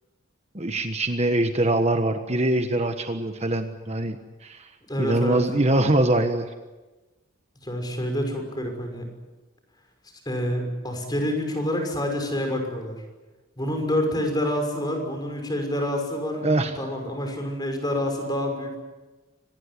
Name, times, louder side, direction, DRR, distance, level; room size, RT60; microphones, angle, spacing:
voice 1, 0.5-4.2 4.4-4.7 5.0-6.5 16.4-16.7, right 1 dB, 30° right, 7 dB, 1.3 m, -23 dB
voice 2, 4.9-5.4 7.6-9.1 10.3-13.0 13.6-18.8, left 1 dB, 20° left, 4 dB, 5.9 m, -27 dB
25.5 x 20.0 x 9.8 m, 1.2 s
head